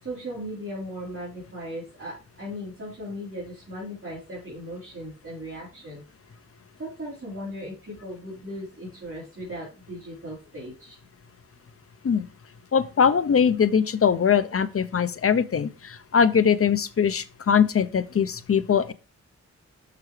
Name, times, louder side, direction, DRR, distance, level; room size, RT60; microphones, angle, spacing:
voice 1, 0.0-6.0 6.8-11.0, equal, 45° right, 3.9 m, -37 dB
voice 2, 12.7-18.9, left 7 dB, 50° left, 0.6 m, -21 dB
6.7 x 5.9 x 3.2 m
wide cardioid pair, 110°, 29 cm